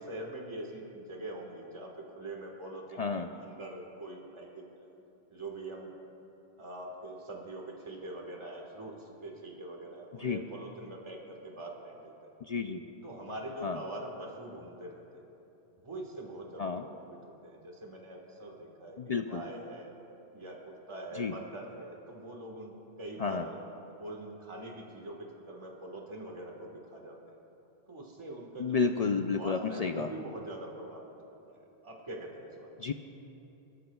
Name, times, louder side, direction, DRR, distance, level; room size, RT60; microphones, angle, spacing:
voice 1, 0.0-4.9 5.3-5.9 6.6-12.1 13.0-15.2 15.8-17.2 17.4-19.9 20.3-23.6 24.0-27.4 27.9-28.9 29.3-31.1 31.5-32.8, right 1 dB, 25° right, -1 dB, 1.6 m, -43 dB
voice 2, 3.0-3.3 10.2-10.4 12.4-12.8 13.6-13.8 16.6-16.9 19.0-19.4 21.1-21.3 23.2-23.5 28.6-30.1 32.8-32.9, left 5 dB, 70° left, 6 dB, 0.3 m, -31 dB
23.5 x 13.5 x 2.3 m, 2.9 s
omnidirectional pair, 1.2 m